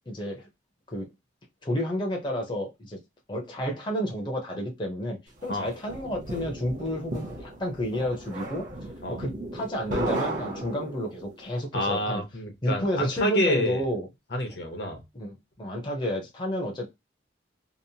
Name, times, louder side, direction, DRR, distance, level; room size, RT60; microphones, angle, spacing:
voice 1, 0.1-0.5 0.9-1.1 1.6-3.0 3.3-8.7 9.1-12.2 12.6-14.1 15.1-16.9, equal, 25° left, 0.6 m, -31 dB
sound 1, 5.4-11.3, right 1 dB, 45° right, 0.7 m, -35 dB
voice 2, 11.7-13.8 14.3-15.0, left 1 dB, 60° left, 0.8 m, -28 dB
2.8 x 2.0 x 2.7 m
head